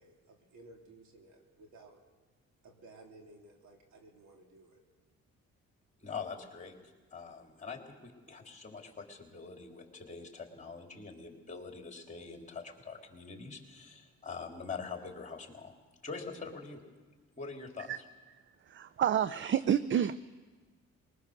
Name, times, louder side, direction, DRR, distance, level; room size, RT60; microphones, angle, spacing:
voice 1, 0.0-2.0 2.6-4.8, right 2 dB, 70° right, 2 dB, 3.2 m, -56 dB
voice 2, 6.0-6.8 7.1-15.7 16.0-16.8 17.4-17.9, left 5 dB, 25° left, 2 dB, 3.4 m, -44 dB
voice 3, 18.7-20.2, right 9 dB, 40° right, 14 dB, 0.5 m, -29 dB
21.5 x 19.5 x 6.5 m, 1.3 s
cardioid pair, 90°, 30 cm